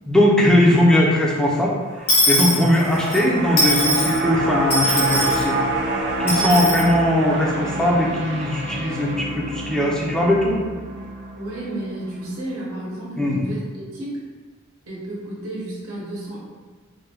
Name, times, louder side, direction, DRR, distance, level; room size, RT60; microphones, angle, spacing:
voice 1, 0.1-1.7 2.3-5.6 5.9-10.6 13.2-13.4, left 1 dB, 5° left, -4 dB, 0.5 m, -19 dB
sound 1, 1.8-12.2 12.6-12.7, right 2 dB, 55° right, 0.5 m, -27 dB
Dishes pots and pans / Coin (dropping), 2.1-3.2 3.6-4.2 4.7-5.4 6.3-6.8, left 1 dB, 80° left, 1.3 m, -20 dB
voice 2, 11.3-14.2 14.8-16.4, right 1 dB, 70° right, -5 dB, 0.9 m, -32 dB
3.3 x 2.2 x 3.4 m, 1.4 s
head